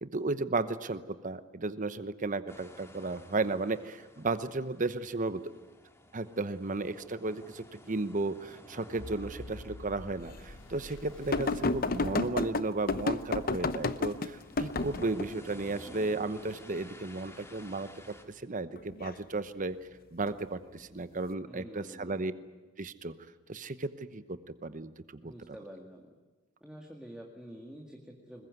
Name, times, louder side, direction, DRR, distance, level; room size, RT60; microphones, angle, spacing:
voice 1, 0.0-5.4 6.1-18.1 18.4-19.8 20.1-22.3 22.8-23.1 23.5-25.3, right 3 dB, 40° right, 12 dB, 1.0 m, -34 dB
sound 1, 2.5-18.2, left 1 dB, 15° left, 2.2 m, -53 dB
sound 2, 9.0-13.1, left 1 dB, 70° left, 1.3 m, -48 dB
sound 3, 11.3-15.3 18.8-19.1 20.3-20.4, left 3 dB, 45° left, 0.8 m, -31 dB
voice 2, 21.5-22.2 25.2-26.1 26.6-28.5, equal, 5° right, 1 dB, 2.1 m, -48 dB
21.5 x 21.0 x 9.5 m, 1.2 s
head